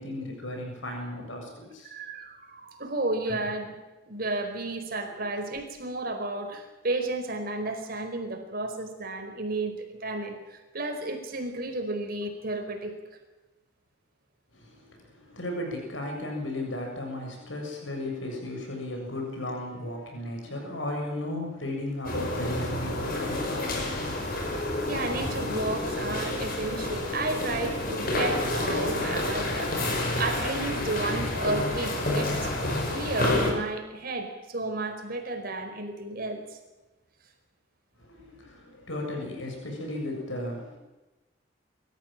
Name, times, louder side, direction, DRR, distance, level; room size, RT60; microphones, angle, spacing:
voice 1, 0.0-1.9 3.3-3.4 14.5-23.9 38.0-40.8, left 1 dB, 85° left, 1 dB, 7.2 m, -35 dB
voice 2, 1.8-3.7 4.1-12.9 24.8-29.9 30.2-36.4, right 2 dB, 50° right, 5 dB, 4.9 m, -32 dB
sound 1, 22.0-33.5, left 2 dB, 50° left, 6.0 m, -29 dB
25.5 x 14.5 x 9.2 m, 1.1 s
head